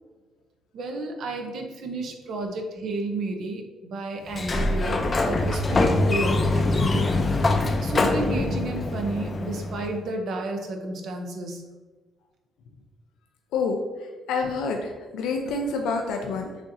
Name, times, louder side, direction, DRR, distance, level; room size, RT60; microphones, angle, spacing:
voice 1, 0.7-11.6, right 2 dB, 70° right, 3 dB, 0.7 m, -32 dB
Sliding door, 4.3-10.0, left 2 dB, 35° left, 0.5 m, -24 dB
voice 2, 14.3-16.6, left 4 dB, 90° left, 2 dB, 0.4 m, -27 dB
6.1 x 2.8 x 2.6 m, 1.2 s
cardioid pair, 90°, 0 cm